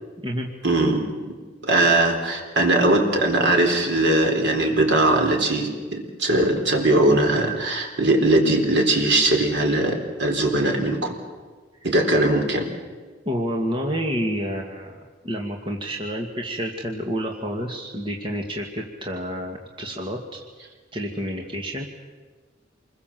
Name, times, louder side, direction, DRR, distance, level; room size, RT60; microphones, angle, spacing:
voice 1, 0.6-1.4 1.6-11.2 11.8-12.7, right 2 dB, 65° right, 2 dB, 4.4 m, -20 dB
voice 2, 13.3-15.0 15.2-20.4 20.9-21.8, equal, 25° right, 1 dB, 2.2 m, -29 dB
28.0 x 21.5 x 7.7 m, 1.4 s
head